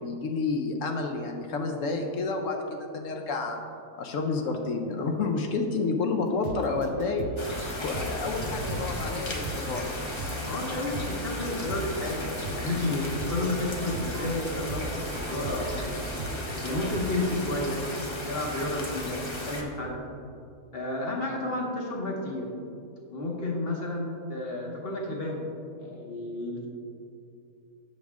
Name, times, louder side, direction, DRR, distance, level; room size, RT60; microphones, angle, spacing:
voice 1, 0.0-3.6 4.0-7.3 7.8-9.9, left 3 dB, 70° left, 3 dB, 0.9 m, -30 dB
sound 1, 6.3-17.6, right 2 dB, 65° right, 0.7 m, -39 dB
sound 2, 7.4-19.6, left 1 dB, 30° left, 0.6 m, -35 dB
voice 2, 10.5-16.0 16.6-17.8 18.3-20.0 20.7-22.5 23.1-25.5 25.8-26.7, left 2 dB, 45° left, -1 dB, 1.0 m, -31 dB
7.2 x 6.2 x 3.5 m, 2.6 s
omnidirectional pair, 1.5 m